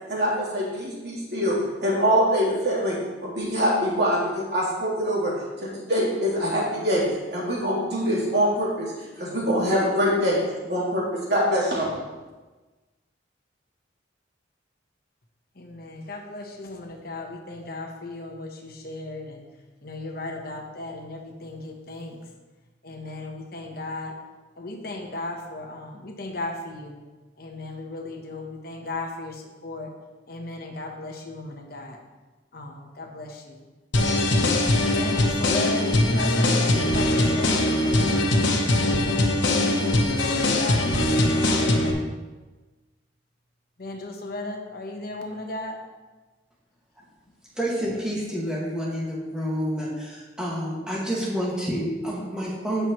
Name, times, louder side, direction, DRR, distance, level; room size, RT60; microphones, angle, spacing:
voice 1, 0.0-5.3 5.6-7.0 7.3-10.4 10.7-11.0 11.3-11.9, equal, 60° right, -7 dB, 3.6 m, -24 dB
voice 2, 15.5-19.4 19.8-22.2 22.8-24.2 24.6-27.0 27.4-29.9 30.3-32.0 32.5-33.6 34.8-37.6 40.3-40.9 43.8-45.8, left 2 dB, 55° left, 2 dB, 1.2 m, -35 dB
sound 1, 33.9-41.9, left 1 dB, 85° left, 1.2 m, -21 dB
voice 3, 47.6-52.9, equal, 5° right, -6 dB, 2.0 m, -28 dB
16.0 x 6.1 x 3.2 m, 1.2 s
head